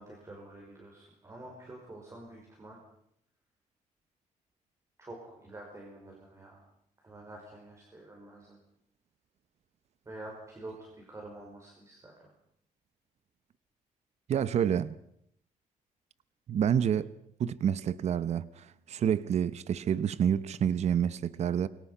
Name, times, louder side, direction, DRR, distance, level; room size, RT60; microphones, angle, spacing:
voice 1, 0.0-2.8 5.0-6.7 7.0-8.6 10.1-12.3 14.5-14.6, right 2 dB, 20° right, 5.2 m, -48 dB
voice 2, 14.3-14.9 16.5-17.1 17.4-21.7, right 8 dB, 50° right, 0.9 m, -28 dB
28.5 x 24.0 x 5.6 m
cardioid pair, 155°, 14 cm